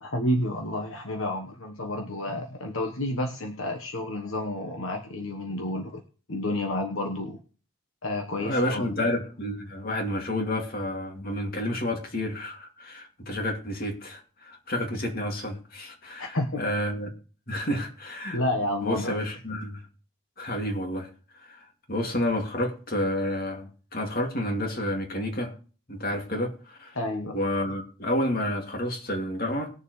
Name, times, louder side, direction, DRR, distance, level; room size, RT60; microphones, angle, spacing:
voice 1, 0.0-6.0 6.3-7.4 8.0-9.1 16.2-16.6 18.3-19.2 26.9-27.4, left 1 dB, 65° left, 3 dB, 1.2 m, -30 dB
voice 2, 8.4-17.1 17.5-18.4 18.8-19.9 20.4-21.1 21.3-25.5 25.9-27.0 27.3-29.7, left 1 dB, 40° left, 2 dB, 2.4 m, -30 dB
20.5 x 7.0 x 3.2 m, 0.39 s
head